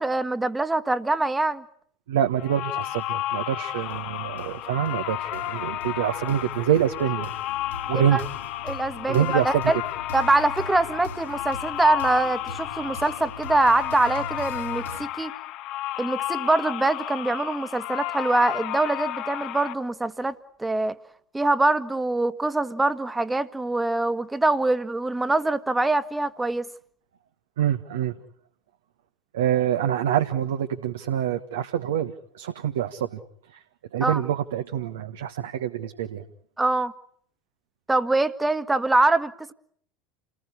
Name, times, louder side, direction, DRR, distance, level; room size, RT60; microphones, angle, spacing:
voice 1, 0.0-1.6 7.9-8.2 8.6-9.8 10.1-15.3 16.0-21.0 21.3-26.7 34.0-34.2 36.6-36.9 37.9-39.5, right 2 dB, 10° right, 1.6 m, -24 dB
voice 2, 2.1-7.3 7.9-8.2 9.1-9.6 27.6-28.2 29.3-33.2 33.5-33.6 33.9-36.2, right 10 dB, 65° right, 1.4 m, -26 dB
sound 1, 2.4-19.7, left 14 dB, 50° left, 1.3 m, -32 dB
sound 2, 3.8-15.0, left 1 dB, 70° left, 2.0 m, -41 dB
30.0 x 19.5 x 9.8 m
figure-of-eight pair, 75°, 0 cm